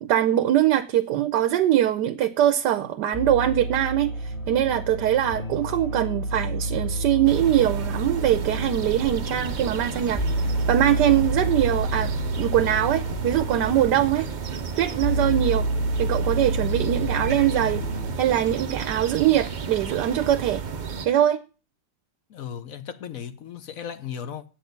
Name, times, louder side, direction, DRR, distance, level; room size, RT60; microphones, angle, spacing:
voice 1, 0.0-14.3 14.8-15.7 16.0-17.8 18.2-20.6 21.0-21.4, right 11 dB, 85° right, 1.3 m, -22 dB
sound 1, 3.1-18.1, right 1 dB, 20° left, 2.0 m, -29 dB
sound 2, 7.2-21.1, right 6 dB, 55° right, 0.5 m, -33 dB
voice 2, 22.3-24.4, left 8 dB, 60° left, 1.1 m, -36 dB
8.3 x 6.4 x 8.0 m
omnidirectional pair, 1.8 m